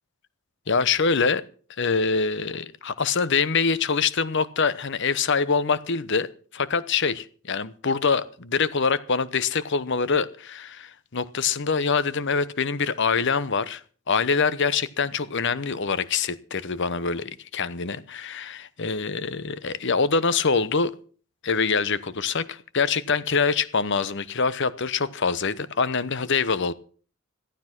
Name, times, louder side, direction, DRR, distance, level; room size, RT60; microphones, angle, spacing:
voice 1, 0.7-1.4 1.8-20.9 21.4-26.7, left 5 dB, 55° left, 0.9 m, -25 dB
14.5 x 12.5 x 6.0 m
head